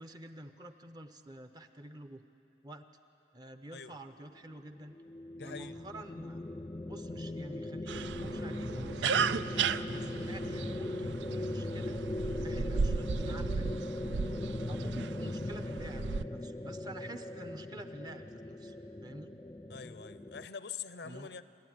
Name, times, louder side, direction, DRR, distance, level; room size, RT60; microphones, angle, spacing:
voice 1, 0.0-2.2 2.6-2.9 3.3-4.9 5.4-6.4 6.8-9.3 9.9-12.0 12.3-13.8 14.7-18.8 19.0-19.3 21.0-21.3, right 1 dB, 20° right, 9 dB, 0.8 m, -48 dB
sound 1, 4.6-20.5, left 1 dB, 20° left, 0.4 m, -39 dB
voice 2, 5.4-5.7 19.7-21.4, left 6 dB, 65° left, 13 dB, 0.7 m, -44 dB
sound 2, 7.9-16.2, right 5 dB, 75° right, 0.4 m, -35 dB
27.5 x 12.5 x 9.5 m, 2.8 s
head